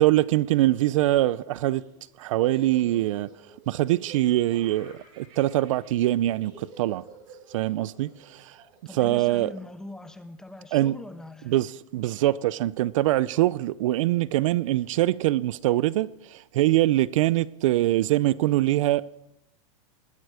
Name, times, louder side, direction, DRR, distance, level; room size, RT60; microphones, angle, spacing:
voice 1, 0.0-1.8 2.2-3.3 3.7-7.0 7.5-8.6 8.9-9.5 10.7-11.0 11.5-19.0, right 15 dB, 70° right, 0.5 m, -23 dB
Laughter, 1.5-9.9, right 4 dB, 35° right, 7.8 m, -50 dB
voice 2, 8.8-11.6, left 2 dB, 5° left, 0.9 m, -42 dB
20.0 x 14.5 x 4.9 m
supercardioid pair, 155°, 17 cm